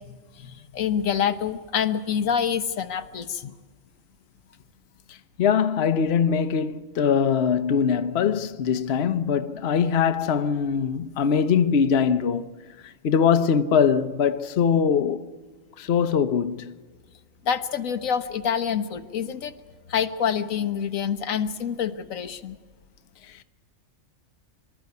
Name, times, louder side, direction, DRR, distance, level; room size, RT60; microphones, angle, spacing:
voice 1, 0.0-3.4 17.4-19.5 19.9-22.6, left 8 dB, 90° left, 1.4 m, -27 dB
voice 2, 5.1-12.5 12.8-15.3 15.8-16.7 23.3-23.4, left 7 dB, 55° left, 1.0 m, -22 dB
24.5 x 13.0 x 9.4 m
omnidirectional pair, 1.4 m